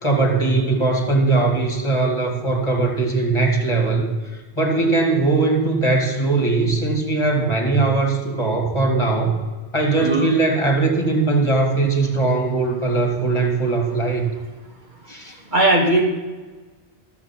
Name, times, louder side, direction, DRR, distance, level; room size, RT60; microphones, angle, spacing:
voice 1, 0.0-4.1 4.6-9.3 9.7-14.3 15.1-15.4, right 3 dB, 25° left, 2 dB, 2.3 m, -20 dB
voice 2, 9.9-10.4 15.5-16.1, right 2 dB, 45° right, -1 dB, 1.8 m, -18 dB
13.5 x 7.3 x 5.8 m, 1.3 s
omnidirectional pair, 1.2 m